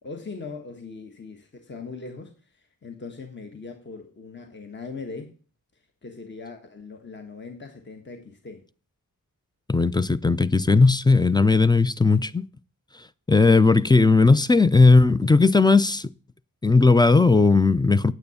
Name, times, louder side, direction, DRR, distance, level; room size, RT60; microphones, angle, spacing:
voice 1, 0.0-5.4 5.7-8.7, left 4 dB, 35° left, 1.3 m, -40 dB
voice 2, 9.7-12.5 13.3-16.1 16.6-18.1, left 3 dB, 15° left, 0.4 m, -17 dB
9.3 x 7.9 x 6.9 m
wide cardioid pair, 115°, 33 cm